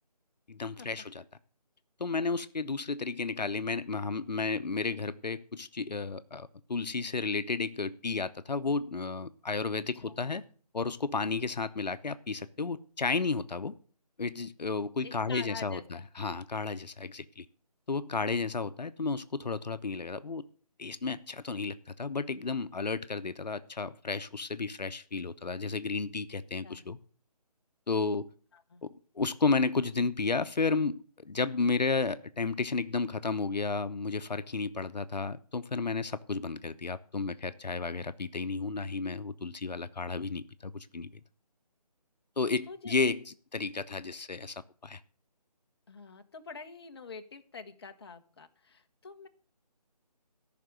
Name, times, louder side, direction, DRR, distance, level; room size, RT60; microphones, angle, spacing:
voice 1, 0.5-1.2 2.0-10.4 10.7-13.7 14.2-17.4 17.9-20.4 20.8-27.0 27.9-28.3 28.8-28.9 29.2-41.1 42.4-44.5 44.8-45.0, left 4 dB, 85° left, 12 dB, 0.9 m, -32 dB
voice 2, 15.0-16.0 26.6-26.8 28.5-28.8 42.7-42.9 45.9-49.3, left 4 dB, 40° left, 6 dB, 1.1 m, -46 dB
14.0 x 6.0 x 7.8 m, 0.42 s
figure-of-eight pair, 165°, 21 cm